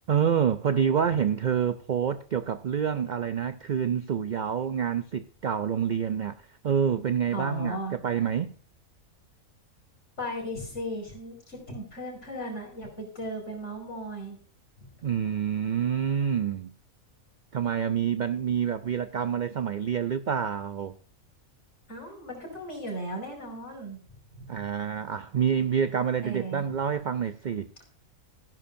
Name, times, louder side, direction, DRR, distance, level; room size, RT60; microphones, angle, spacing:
voice 1, 0.1-6.4 6.6-8.5 15.0-16.7 17.5-21.0 24.5-27.7, right 8 dB, 60° right, 0.4 m, -27 dB
voice 2, 7.3-8.0 10.2-14.4 14.8-14.9 21.9-24.0 24.3-24.6 26.2-26.6, equal, 55° left, 5.4 m, -36 dB
16.0 x 10.5 x 2.6 m
omnidirectional pair, 1.4 m